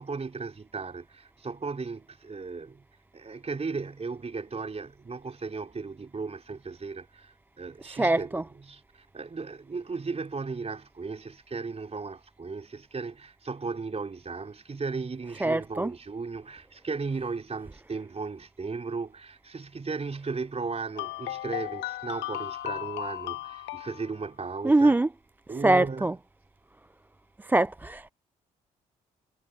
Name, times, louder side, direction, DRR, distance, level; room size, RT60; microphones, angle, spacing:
voice 1, 0.0-2.8 3.1-24.9 25.5-26.1, right 4 dB, 35° right, 4.5 m, -36 dB
voice 2, 7.9-8.4 15.4-15.9 24.6-25.1 25.6-26.1 27.4-28.1, right 2 dB, 10° right, 0.3 m, -23 dB
sound 1, 21.0-24.2, left 15 dB, 80° left, 2.4 m, -35 dB
hypercardioid pair, 50°, 18 cm